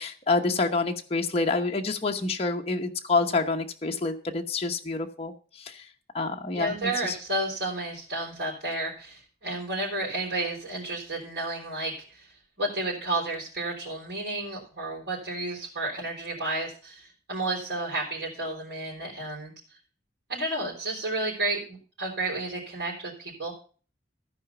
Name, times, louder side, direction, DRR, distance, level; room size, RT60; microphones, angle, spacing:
voice 1, 0.0-5.9 6.1-7.1, left 3 dB, 35° left, 2 dB, 1.0 m, -28 dB
voice 2, 6.5-19.5 20.3-23.5, right 2 dB, 75° right, -6 dB, 3.9 m, -32 dB
14.5 x 4.9 x 7.0 m, 0.40 s
head